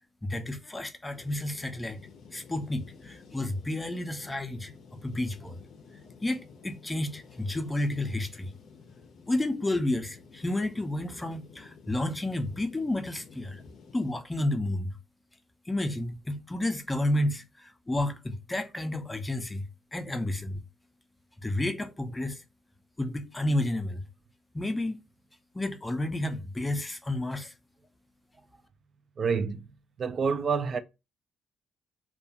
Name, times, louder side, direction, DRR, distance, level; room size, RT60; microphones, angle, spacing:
voice 1, 0.2-2.0 2.3-4.7 5.0-5.6 6.2-8.5 9.3-13.6 13.9-14.9 15.7-19.6 19.9-20.6 21.4-22.4 23.0-24.0 24.5-25.0 25.5-27.5, left 1 dB, 15° left, 0.5 m, -31 dB
sound 1, 1.1-14.1, left 5 dB, 70° left, 0.5 m, -52 dB
voice 2, 29.2-29.7 30.0-30.8, right 5 dB, 50° right, 0.3 m, -28 dB
2.3 x 2.3 x 2.6 m
cardioid pair, 90°, 0 cm